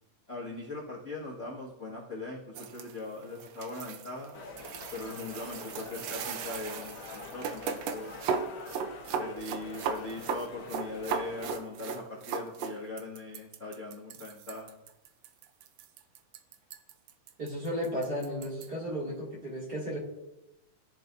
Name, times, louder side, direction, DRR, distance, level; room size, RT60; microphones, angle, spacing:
voice 1, 0.3-4.4 4.9-8.4 9.2-14.8, left 2 dB, 30° left, -6 dB, 1.5 m, -40 dB
sound 1, 2.6-18.7, right 6 dB, 80° right, 1.4 m, -37 dB
sound 2, 4.3-11.5, left 4 dB, 75° left, 0.9 m, -45 dB
voice 2, 17.4-20.0, equal, 30° right, -4 dB, 2.6 m, -34 dB
18.0 x 10.5 x 2.7 m, 0.94 s
omnidirectional pair, 3.8 m